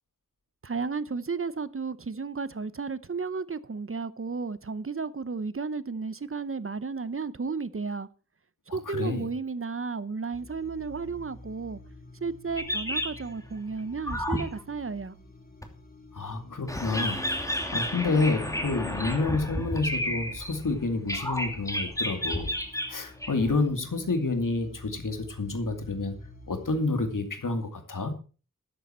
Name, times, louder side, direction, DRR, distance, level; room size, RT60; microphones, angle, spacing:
voice 1, 0.6-8.1 8.7-11.8 12.2-15.2, right 4 dB, 40° right, 0.8 m, -33 dB
voice 2, 8.7-9.2 16.1-22.5 22.8-26.1 26.5-28.1, left 3 dB, 70° left, 2.4 m, -29 dB
sound 1, 10.3-27.2, left 2 dB, 30° left, 3.6 m, -49 dB
sound 2, 12.6-13.4 14.1-14.6 15.6-15.7 16.7-20.8 21.1-23.6, left 1 dB, 10° left, 2.7 m, -31 dB
12.5 x 10.5 x 4.4 m
wide cardioid pair, 50°, 32 cm